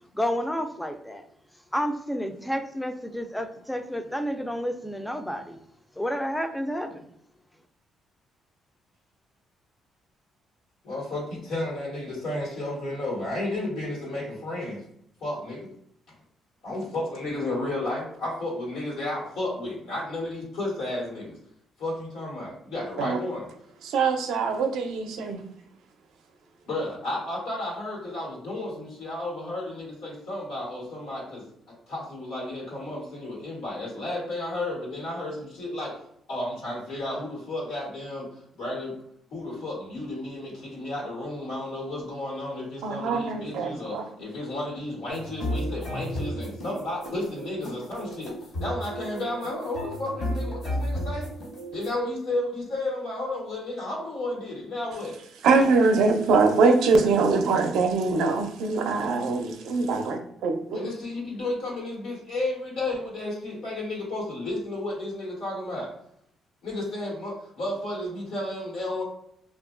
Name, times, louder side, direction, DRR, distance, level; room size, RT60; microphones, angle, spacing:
voice 1, 0.1-1.2 1.7-5.6 6.0-7.1, equal, 5° left, 7 dB, 0.3 m, -30 dB
voice 2, 10.8-14.8 15.2-15.7 16.6-21.4 21.8-23.5 26.7-31.4 31.9-35.9 36.3-38.3 38.5-39.0 39.3-51.3 51.7-55.2 55.5-55.8 60.7-65.9 66.6-69.0, left 1 dB, 90° left, -6 dB, 1.2 m, -32 dB
voice 3, 23.8-25.4 42.8-44.0 55.4-60.8, right 4 dB, 85° right, 5 dB, 0.4 m, -23 dB
sound 1, 45.1-51.9, equal, 60° left, 1.2 m, -33 dB
2.7 x 2.3 x 2.4 m, 0.72 s
cardioid pair, 90°, 0 cm